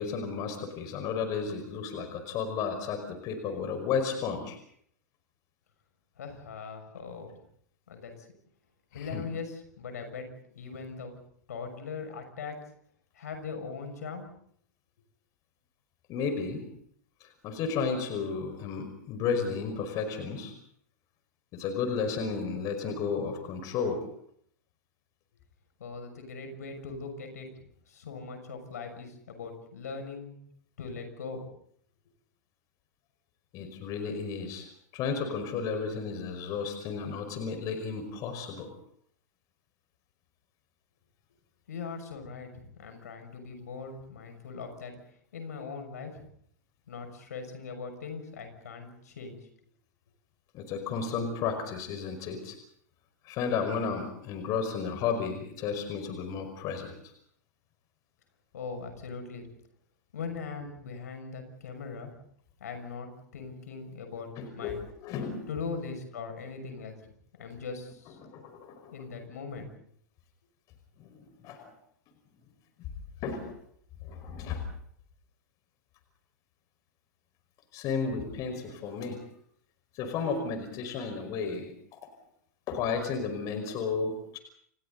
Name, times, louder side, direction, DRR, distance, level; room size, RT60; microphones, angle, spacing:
voice 1, 0.0-4.6 8.9-9.2 16.1-16.6 17.2-20.5 21.5-24.1 33.5-34.7 34.9-38.7 50.5-52.6 53.2-57.1 64.4-65.4 68.2-68.9 71.0-71.7 73.2-73.5 74.0-74.6 77.7-79.2 80.0-82.0 82.7-84.4, left 5 dB, 40° left, 6 dB, 5.3 m, -33 dB
voice 2, 6.2-7.4 7.9-8.3 8.9-10.2 10.5-11.1 11.5-12.6 13.1-14.3 25.8-30.4 30.8-31.5 41.7-44.9 45.3-46.2 46.9-49.4 58.5-59.4 60.1-62.1 62.6-64.8 65.5-67.1 67.4-68.2 68.9-69.7, left 5 dB, 65° left, 6 dB, 6.5 m, -40 dB
30.0 x 29.5 x 4.1 m, 0.66 s
figure-of-eight pair, 95°, 9 cm